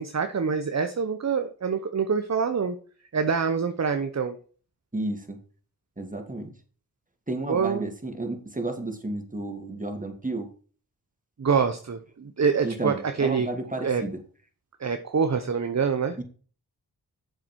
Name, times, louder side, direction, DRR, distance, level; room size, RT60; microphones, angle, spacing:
voice 1, 0.0-2.8 3.1-4.4 7.5-7.9 11.4-13.5 13.8-14.0 14.8-16.2, right 6 dB, 45° right, 8 dB, 1.0 m, -25 dB
voice 2, 4.9-5.4 6.0-6.5 7.3-10.5 12.6-14.2 16.2-16.3, right 2 dB, 20° right, 4 dB, 2.8 m, -32 dB
7.4 x 7.4 x 4.6 m, 0.40 s
cardioid pair, 45°, 39 cm